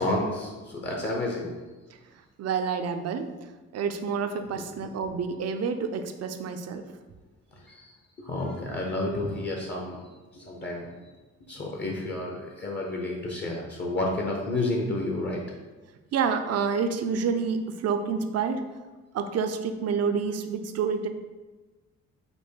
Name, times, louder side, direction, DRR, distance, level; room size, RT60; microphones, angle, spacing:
voice 1, 0.0-1.5 4.7-4.9 7.5-7.9 8.2-10.9 11.5-15.4, left 2 dB, 35° left, -1 dB, 0.8 m, -30 dB
voice 2, 2.1-7.0 16.1-18.7 19.1-21.1, right 6 dB, 55° right, 8 dB, 0.5 m, -28 dB
5.2 x 2.1 x 4.5 m, 1.2 s
cardioid pair, 90°, 30 cm